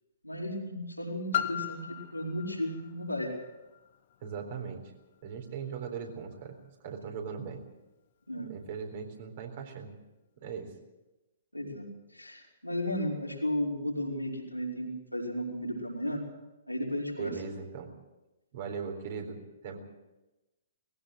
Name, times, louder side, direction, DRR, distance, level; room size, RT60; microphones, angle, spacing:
voice 1, 0.2-3.3 8.3-8.5 11.5-11.8 12.1-16.2 16.7-17.3, equal, 90° left, -2 dB, 5.6 m, -34 dB
Piano, 1.3-6.8 7.5-7.6, left 10 dB, 45° left, 1.0 m, -39 dB
voice 2, 4.2-4.8 5.2-6.6 6.8-7.6 8.4-9.9 10.4-10.7 17.2-17.9 18.5-19.4 19.6-19.8, right 6 dB, 45° right, 4 dB, 4.0 m, -39 dB
20.0 x 16.5 x 7.9 m, 1.0 s
figure-of-eight pair, 120°, 0 cm